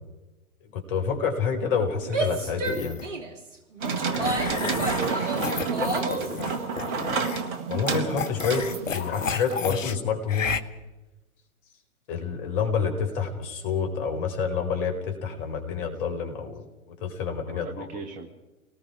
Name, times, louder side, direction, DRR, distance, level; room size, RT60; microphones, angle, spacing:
voice 1, 0.7-3.0 7.7-8.7 8.9-10.5 12.1-16.6 17.0-17.9, left 6 dB, 40° left, 4 dB, 4.5 m, -28 dB
Female speech woman speaking / Yell, 2.0-6.4, right 3 dB, 55° right, 3.0 m, -31 dB
sound 1, 2.6-3.1 4.1-7.5 7.9-9.9 10.3-10.6, left 6 dB, 60° left, 1.4 m, -32 dB
sound 2, 3.8-9.5, right 5 dB, 35° right, 2.1 m, -30 dB
voice 2, 4.7-7.0 12.5-12.9 17.5-18.3, right 4 dB, 20° right, 4 dB, 1.5 m, -38 dB
30.0 x 19.5 x 4.9 m, 1.1 s
figure-of-eight pair, 115°, 43 cm